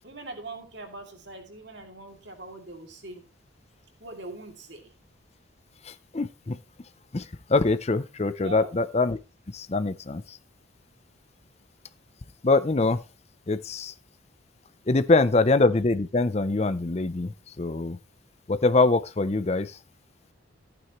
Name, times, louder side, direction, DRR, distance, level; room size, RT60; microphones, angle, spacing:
voice 1, 0.0-3.3 4.0-4.9 8.4-8.7, right 2 dB, 60° right, 2.5 m, -42 dB
voice 2, 6.1-6.6 7.1-7.2 7.5-9.2 9.5-10.2 12.4-13.0 13.5-13.9 14.9-17.3 17.6-18.0 18.5-19.7, left 3 dB, 30° left, 0.5 m, -23 dB
14.5 x 8.9 x 3.0 m
head